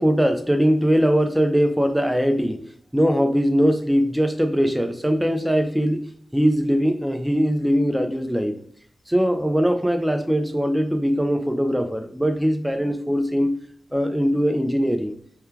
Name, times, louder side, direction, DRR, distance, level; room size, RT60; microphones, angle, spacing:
voice 1, 0.0-2.6 2.9-6.0 6.3-8.5 9.1-13.5 13.9-15.1, equal, 5° right, 6 dB, 0.4 m, -21 dB
2.2 x 2.2 x 3.1 m, 0.63 s
cardioid pair, 50°, 0 cm